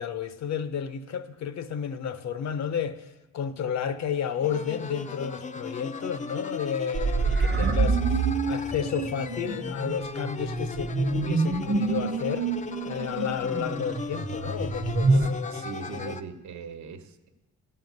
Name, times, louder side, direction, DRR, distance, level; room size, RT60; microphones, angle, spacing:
voice 1, 0.0-12.5 12.8-16.1, left 7 dB, 65° left, 0.8 m, -32 dB
sound 1, 4.4-16.2, left 4 dB, 25° left, 0.5 m, -37 dB
sound 2, 6.9-15.3, right 3 dB, 35° right, 0.9 m, -27 dB
voice 2, 15.1-17.3, right 5 dB, 70° right, 1.1 m, -40 dB
12.5 x 5.7 x 7.9 m
cardioid pair, 90°, 30 cm